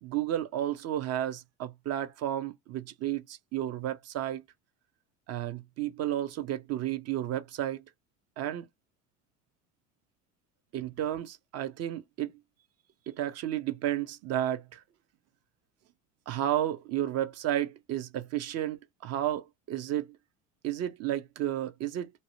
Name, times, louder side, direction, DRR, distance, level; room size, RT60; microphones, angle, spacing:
voice 1, 0.0-4.4 5.3-7.8 8.4-8.6 10.7-12.3 13.1-14.8 16.3-20.2 20.6-22.1, right 12 dB, 45° right, 0.6 m, -32 dB
2.6 x 2.0 x 3.0 m
hypercardioid pair, 75°, 37 cm